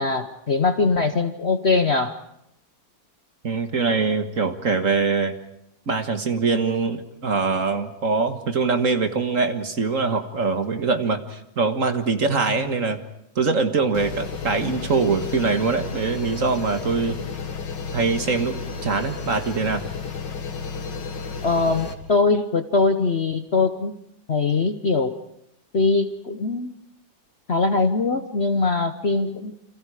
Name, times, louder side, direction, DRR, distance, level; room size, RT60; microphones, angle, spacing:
voice 1, 0.0-2.2 21.4-23.9 24.3-25.1 25.7-26.7 27.5-29.5, left 3 dB, 45° left, 8 dB, 1.0 m, -22 dB
voice 2, 3.4-5.3 5.9-13.0 13.4-17.2 17.9-19.8, right 4 dB, 45° right, 8 dB, 1.8 m, -23 dB
sound 1, 13.9-21.9, left 4 dB, 70° left, 2.6 m, -32 dB
29.5 x 26.5 x 4.9 m, 0.79 s
omnidirectional pair, 2.0 m